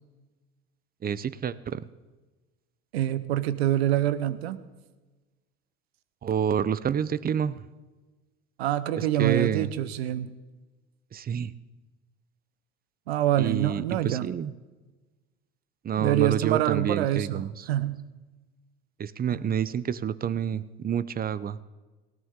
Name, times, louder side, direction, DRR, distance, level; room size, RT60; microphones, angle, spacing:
voice 1, 1.0-1.9 6.2-7.6 9.0-9.7 11.1-11.5 13.4-14.5 15.8-17.6 19.0-21.6, right 8 dB, 30° right, 17 dB, 0.7 m, -28 dB
voice 2, 2.9-4.6 8.6-10.3 13.1-14.3 16.0-18.0 19.3-19.4, right 12 dB, 85° right, 14 dB, 0.9 m, -26 dB
18.5 x 17.0 x 3.8 m, 1.2 s
hypercardioid pair, 80°, 31 cm